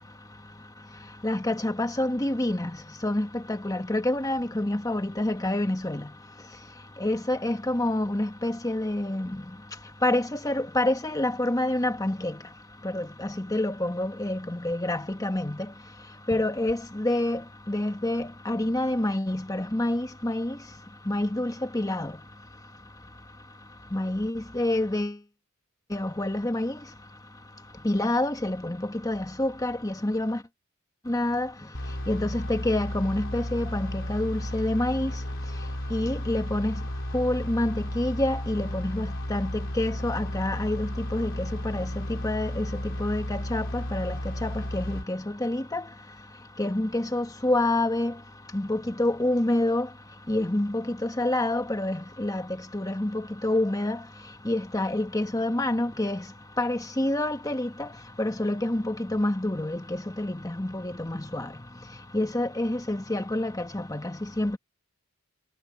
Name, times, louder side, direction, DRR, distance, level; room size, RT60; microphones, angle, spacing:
voice 1, 1.2-2.7 3.0-6.1 7.0-9.4 10.0-12.4 12.8-15.7 16.3-17.4 17.7-20.6 21.1-22.1 23.9-25.1 25.9-26.8 27.8-30.4 31.1-31.5 32.1-35.1 35.9-36.7 37.1-45.8 46.6-48.1 48.5-49.9 50.3-52.4 52.7-54.0 54.4-56.2 56.6-57.9 58.2-61.5 62.1-64.6, left 1 dB, 15° left, 1.3 m, -27 dB
sound 1, 31.7-45.0, equal, 60° left, 3.6 m, -33 dB
head